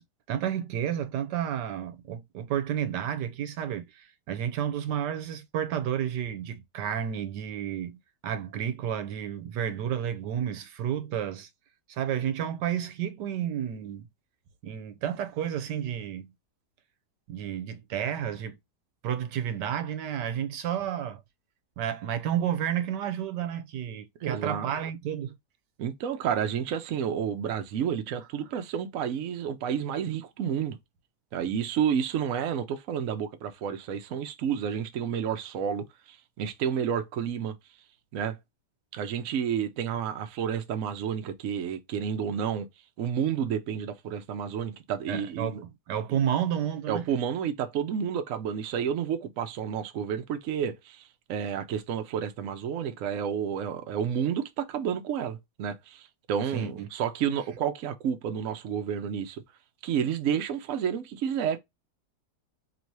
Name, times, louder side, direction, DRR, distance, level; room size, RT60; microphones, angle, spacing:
voice 1, 0.3-11.5 11.9-14.1 14.6-16.3 17.3-18.6 19.0-21.2 21.8-25.4 45.1-47.0 56.5-56.9, right 9 dB, 85° right, 1.3 m, -31 dB
voice 2, 24.2-24.7 25.8-30.8 31.3-37.6 38.1-38.4 38.9-42.7 43.0-45.6 46.9-59.4 59.8-61.6, right 8 dB, 60° right, 0.9 m, -30 dB
3.1 x 2.8 x 4.5 m
omnidirectional pair, 1.8 m